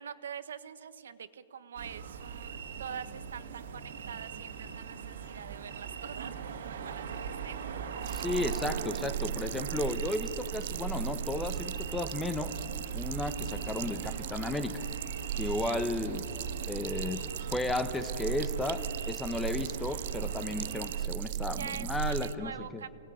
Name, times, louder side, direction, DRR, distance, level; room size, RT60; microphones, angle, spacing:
voice 1, 0.0-7.6 15.6-15.9 21.5-22.9, right 7 dB, 90° right, 12 dB, 1.1 m, -44 dB
sound 1, 1.8-21.1, right 6 dB, 70° right, 2.1 m, -41 dB
sound 2, 8.0-22.3, right 10 dB, 50° right, 0.5 m, -37 dB
voice 2, 8.1-12.6 12.9-14.8 15.3-16.3 16.6-22.8, left 2 dB, 5° left, 11 dB, 0.9 m, -34 dB
25.5 x 19.0 x 10.0 m, 2.7 s
hypercardioid pair, 170°, 0 cm